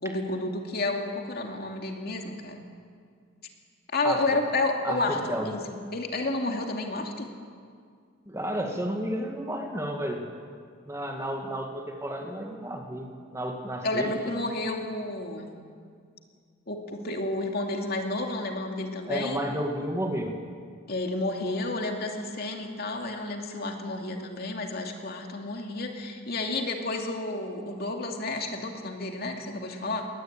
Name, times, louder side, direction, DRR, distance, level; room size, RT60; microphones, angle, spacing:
voice 1, 0.0-2.6 3.9-7.3 13.8-15.6 16.7-19.4 20.9-30.1, left 2 dB, 50° left, 2 dB, 2.6 m, -31 dB
voice 2, 4.8-5.5 8.3-10.3 10.9-14.1 19.1-20.4, right 1 dB, 15° right, 2 dB, 2.2 m, -32 dB
22.0 x 19.0 x 9.0 m, 2.1 s
head